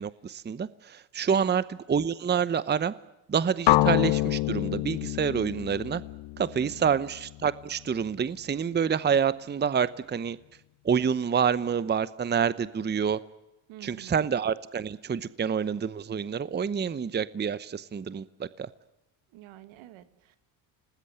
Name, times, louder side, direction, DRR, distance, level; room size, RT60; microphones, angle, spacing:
voice 1, 0.0-2.9 3.3-6.0 6.4-10.4 10.8-13.2 13.8-18.7, right 7 dB, 20° right, 17 dB, 0.8 m, -27 dB
voice 2, 1.3-1.6 6.6-7.1 13.7-14.2 19.3-20.4, right 13 dB, 75° right, 12 dB, 2.2 m, -48 dB
sound 1, 3.7-7.6, left 17 dB, 60° left, 1.0 m, -27 dB
27.5 x 19.5 x 8.0 m, 0.96 s
supercardioid pair, 95°, 48 cm